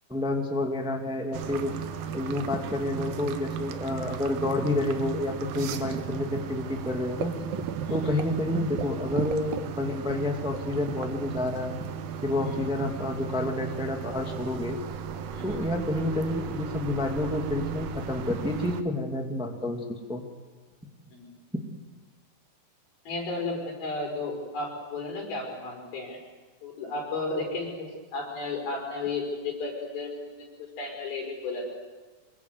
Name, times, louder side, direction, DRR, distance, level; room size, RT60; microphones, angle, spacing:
voice 1, 0.1-1.7 2.1-7.3 7.9-11.7 12.2-14.8 15.4-20.2, left 1 dB, ahead, 3 dB, 1.6 m, -29 dB
sound 1, 1.3-18.8, right 7 dB, 80° right, 2.9 m, -35 dB
voice 2, 23.1-26.2 26.6-30.5 30.8-31.7, left 3 dB, 80° left, 1 dB, 7.3 m, -33 dB
25.0 x 22.5 x 8.2 m, 1.3 s
omnidirectional pair, 4.2 m